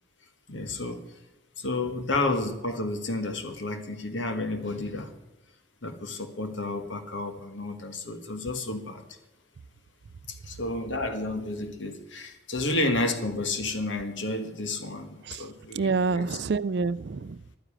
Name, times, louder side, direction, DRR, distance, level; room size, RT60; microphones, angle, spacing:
voice 1, 0.5-1.2 1.6-5.1 5.8-9.0 10.3-15.9, left 2 dB, 80° left, 1.5 m, -31 dB
voice 2, 15.2-17.4, right 4 dB, 60° right, 0.4 m, -28 dB
12.0 x 10.0 x 8.6 m
head